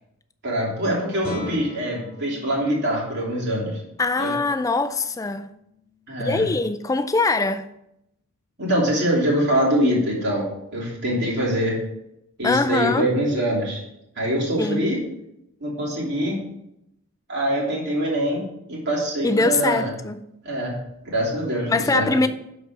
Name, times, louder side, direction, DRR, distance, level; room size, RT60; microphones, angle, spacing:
voice 1, 0.4-3.8 4.2-4.3 6.1-6.5 8.6-10.5 10.7-11.8 12.4-13.8 14.2-15.0 15.6-16.4 17.3-19.9 20.4-20.7 21.0-22.3, equal, 50° right, 2.9 m, -24 dB
Guitar, 1.2-6.8, left 2 dB, 5° right, 3.0 m, -41 dB
voice 2, 4.0-5.5 6.2-7.7 12.4-13.1 14.6-14.9 19.2-20.3 21.7-22.3, left 3 dB, 15° left, 0.3 m, -22 dB
11.0 x 4.1 x 4.8 m
head